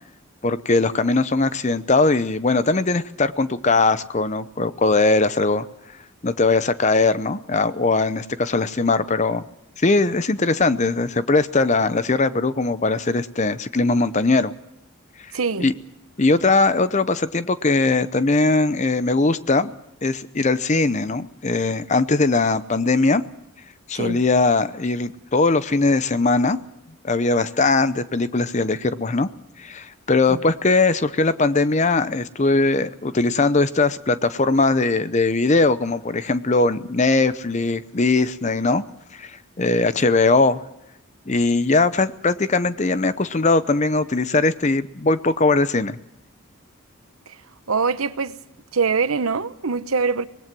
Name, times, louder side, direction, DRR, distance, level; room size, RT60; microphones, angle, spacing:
voice 1, 0.4-5.7 6.2-9.4 9.8-14.5 15.6-15.7 16.2-19.7 20.0-23.2 23.9-26.6 27.0-29.3 29.6-38.8 39.1-40.6 41.3-46.0, left 3 dB, 35° left, 0.7 m, -20 dB
voice 2, 15.3-15.7 24.0-24.2 30.3-30.4 47.7-48.4 48.7-50.3, right 5 dB, 85° right, 0.9 m, -23 dB
25.0 x 20.0 x 6.1 m
head